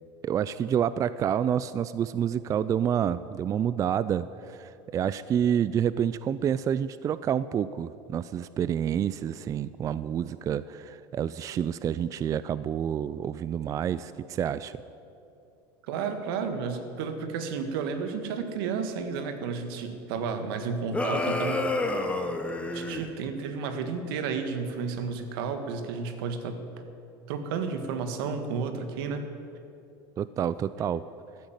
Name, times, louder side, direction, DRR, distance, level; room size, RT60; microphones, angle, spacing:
voice 1, 0.2-14.7 30.2-31.0, right 9 dB, 25° right, 16 dB, 0.3 m, -28 dB
voice 2, 15.9-21.6 21.9-22.0 22.7-26.6 27.3-29.3, right 5 dB, 75° right, 8 dB, 1.7 m, -32 dB
sound 1, 20.9-23.1, left 2 dB, 10° left, 1.3 m, -29 dB
14.5 x 8.9 x 9.2 m, 2.7 s
supercardioid pair, 120°, 12 cm